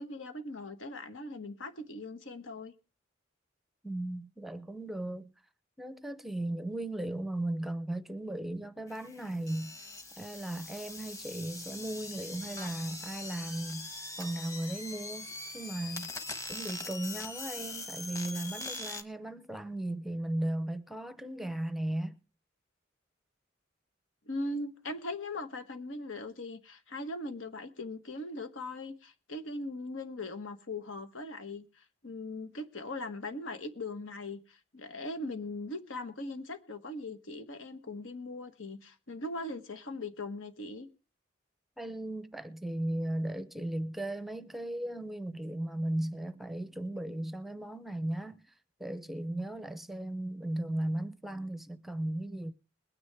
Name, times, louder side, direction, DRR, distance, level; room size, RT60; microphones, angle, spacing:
voice 1, 0.0-2.7 24.2-40.9, left 2 dB, 90° left, 1.4 m, -40 dB
voice 2, 3.8-5.3 5.8-9.7 10.2-13.9 14.2-16.1 16.5-22.2 41.8-48.4 48.8-52.5, right 1 dB, ahead, 0.6 m, -36 dB
sound 1, 8.9-19.0, left 2 dB, 15° left, 1.2 m, -42 dB
21.5 x 9.7 x 3.4 m
head